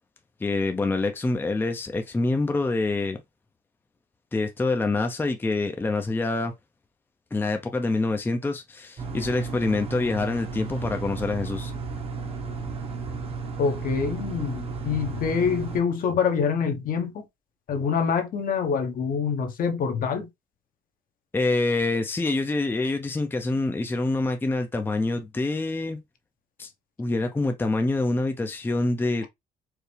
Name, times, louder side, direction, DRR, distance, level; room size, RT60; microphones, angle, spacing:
voice 1, 0.4-3.2 4.3-6.5 7.3-11.7 21.3-26.0 26.6-26.7 27.0-29.3, left 2 dB, 10° left, 0.6 m, -26 dB
sound 1, 9.0-15.8, right 4 dB, 35° right, 1.1 m, -34 dB
voice 2, 13.6-17.2 17.7-20.3, left 6 dB, 55° left, 1.0 m, -26 dB
4.7 x 2.6 x 3.3 m
cardioid pair, 110°, 17 cm